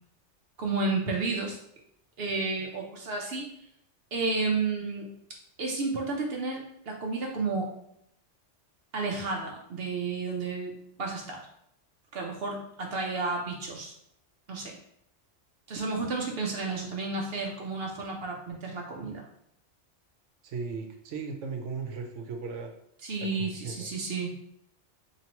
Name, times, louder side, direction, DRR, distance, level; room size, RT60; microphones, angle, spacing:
voice 1, 0.6-1.6 2.2-3.5 4.1-5.1 5.6-7.7 8.9-11.5 12.1-13.9 14.5-14.7 15.7-19.3 23.0-24.4, right 3 dB, 60° right, 0 dB, 0.8 m, -32 dB
voice 2, 20.4-22.7 23.4-23.7, right 5 dB, 80° right, 3 dB, 1.0 m, -36 dB
4.5 x 3.0 x 2.9 m, 0.74 s
omnidirectional pair, 1.2 m